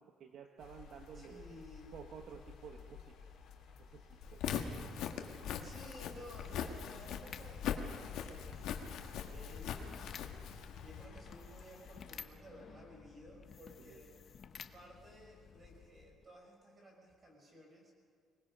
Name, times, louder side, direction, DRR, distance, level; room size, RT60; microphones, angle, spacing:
voice 1, 0.0-1.5 1.9-3.0 3.9-4.0 4.3-4.9 13.9-14.0, right 7 dB, 55° right, 4 dB, 1.1 m, -52 dB
sound 1, 0.6-12.3, left 5 dB, 60° left, 5.4 m, -54 dB
voice 2, 1.1-1.9 4.0-4.2 5.6-10.2 10.7-14.2 14.7-17.9, equal, 30° right, 1 dB, 5.0 m, -56 dB
Walk footsteps, 4.3-11.1, left 8 dB, 75° left, 1.6 m, -41 dB
sound 2, 4.3-16.3, left 7 dB, 40° left, 0.9 m, -55 dB
25.0 x 20.0 x 5.4 m, 2.1 s
cardioid pair, 155°, 0 cm